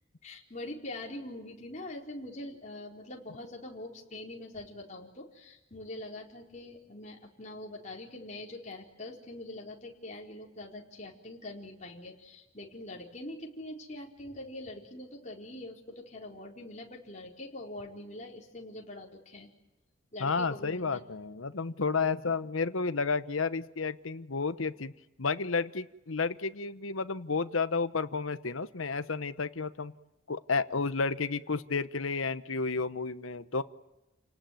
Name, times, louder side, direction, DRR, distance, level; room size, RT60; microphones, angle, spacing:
voice 1, 0.2-19.5 20.1-21.0 22.3-22.4, left 1 dB, 35° left, 0 dB, 4.3 m, -44 dB
voice 2, 20.2-24.9 25.2-29.9 30.3-33.6, left 4 dB, 85° left, 13 dB, 1.0 m, -31 dB
29.5 x 18.5 x 9.2 m, 1.0 s
head